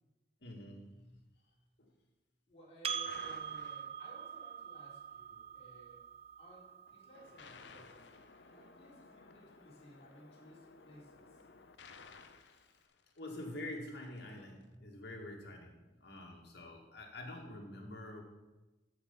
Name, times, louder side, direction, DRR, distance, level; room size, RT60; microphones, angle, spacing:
voice 1, 0.4-1.2 1.8-1.9 12.5-12.6 13.2-18.2, left 1 dB, 70° left, 1 dB, 2.0 m, -47 dB
voice 2, 2.5-6.0 6.4-8.0 8.5-11.4, right 1 dB, 35° left, -7 dB, 3.9 m, -58 dB
Percussion, 2.8-7.7, right 7 dB, 35° right, 0.6 m, -44 dB
sound 1, 3.0-4.5 7.1-13.7, left 4 dB, 85° left, 0.7 m, -57 dB
13.5 x 5.5 x 5.3 m, 1.1 s
head